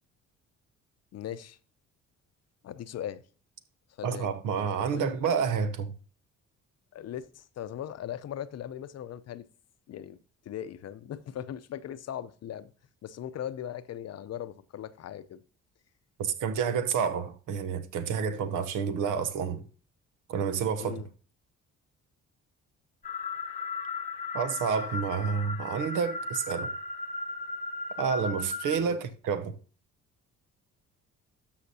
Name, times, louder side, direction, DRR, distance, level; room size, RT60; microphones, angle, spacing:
voice 1, 1.1-1.6 2.6-3.2 4.0-4.4 4.9-5.3 6.9-9.5 9.9-10.2 10.5-12.7 13.0-15.4 20.8-21.1 28.8-29.0, left 10 dB, 55° left, 0.6 m, -39 dB
voice 2, 4.0-5.9 16.2-19.6 20.3-20.9 24.3-26.7 28.0-29.5, right 6 dB, 85° right, 0.9 m, -29 dB
sound 1, 23.0-28.8, left 3 dB, 25° left, 0.8 m, -36 dB
13.0 x 5.7 x 2.8 m
cardioid pair, 90°, 30 cm